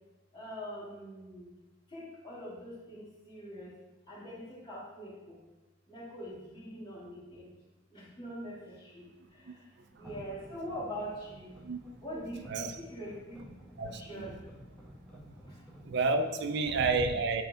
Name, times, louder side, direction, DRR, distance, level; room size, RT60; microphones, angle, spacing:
voice 1, 0.3-1.5 1.9-3.7 4.1-5.4 5.9-7.5 7.9-9.1 10.0-11.5 12.0-13.4 13.9-14.4, equal, 25° left, -7 dB, 2.5 m, -43 dB
sound 1, 10.0-16.1, equal, 5° left, 1.6 m, -53 dB
voice 2, 12.2-12.7 13.8-14.3 15.8-17.4, right 3 dB, 60° right, 7 dB, 0.5 m, -30 dB
9.5 x 4.4 x 3.6 m, 1.2 s
head